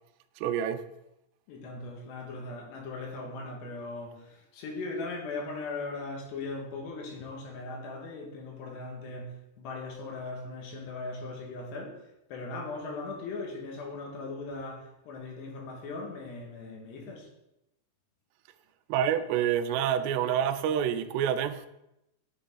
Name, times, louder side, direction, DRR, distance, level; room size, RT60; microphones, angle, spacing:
voice 1, 0.4-0.9 18.9-21.7, right 9 dB, 90° right, 2.7 m, -27 dB
voice 2, 1.5-12.0 12.3-17.3, left 3 dB, 85° left, 3.8 m, -39 dB
10.0 x 6.2 x 3.8 m
omnidirectional pair, 4.7 m